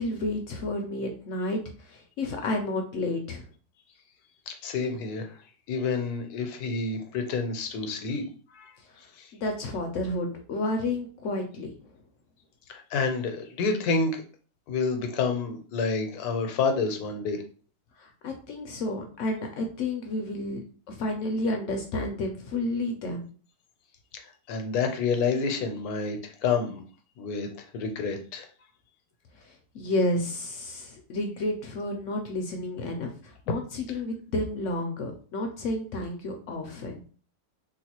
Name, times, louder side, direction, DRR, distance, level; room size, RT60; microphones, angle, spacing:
voice 1, 0.0-3.5 9.3-11.7 18.0-23.2 29.4-37.0, left 2 dB, 65° left, 3 dB, 0.8 m, -31 dB
voice 2, 4.5-5.3 5.7-8.2 8.6-8.7 9.2-9.3 12.7-14.2 14.7-17.4 24.5-26.8 27.2-27.5 27.7-28.5, left 4 dB, 85° left, 5 dB, 1.2 m, -28 dB
3.8 x 2.3 x 2.9 m, 0.39 s
omnidirectional pair, 1.6 m